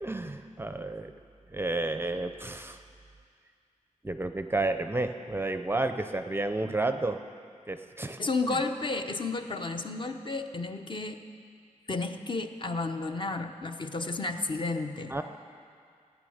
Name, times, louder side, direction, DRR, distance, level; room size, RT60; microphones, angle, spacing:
voice 1, 0.0-1.1 1.5-2.8 4.0-7.2 7.7-8.2 15.1-15.2, right 2 dB, 15° right, 8 dB, 0.5 m, -31 dB
voice 2, 8.2-11.2 11.9-15.1, left 3 dB, 40° left, 5 dB, 0.8 m, -32 dB
16.0 x 9.6 x 7.9 m, 2.2 s
wide cardioid pair, 155°, 13 cm